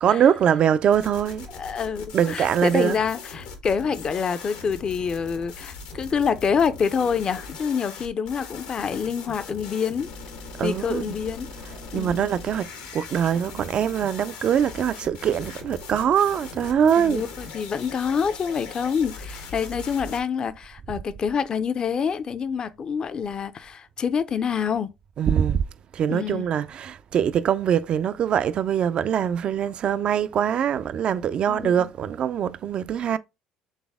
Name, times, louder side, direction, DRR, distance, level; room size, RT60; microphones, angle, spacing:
voice 1, 0.0-1.5 2.1-3.0 10.6-11.1 11.9-17.2 25.2-25.6 25.9-33.2, right 8 dB, 50° right, 0.4 m, -23 dB
sound 1, 0.9-20.2, left 4 dB, 85° left, 1.2 m, -40 dB
voice 2, 1.5-10.1 10.6-11.5 11.9-12.3 17.0-24.9 26.1-26.5 31.5-31.7, left 6 dB, 40° left, 0.5 m, -27 dB
4.0 x 3.5 x 3.5 m
supercardioid pair, 90°, 2 cm